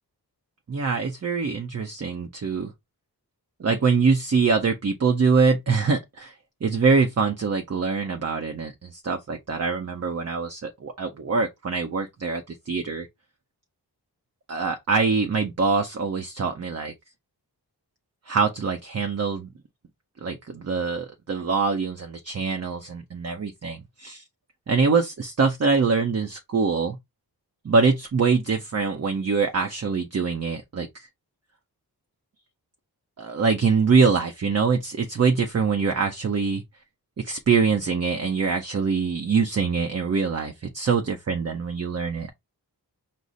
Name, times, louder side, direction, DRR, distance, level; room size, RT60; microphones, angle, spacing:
voice 1, 0.7-2.7 3.6-6.3 6.6-13.1 14.5-16.9 18.3-19.5 20.2-24.2 24.7-27.0 27.6-31.1 33.2-36.6 37.2-42.3, right 5 dB, 40° right, 0.6 m, -24 dB
4.9 x 2.0 x 4.0 m
wide cardioid pair, 95°, 40 cm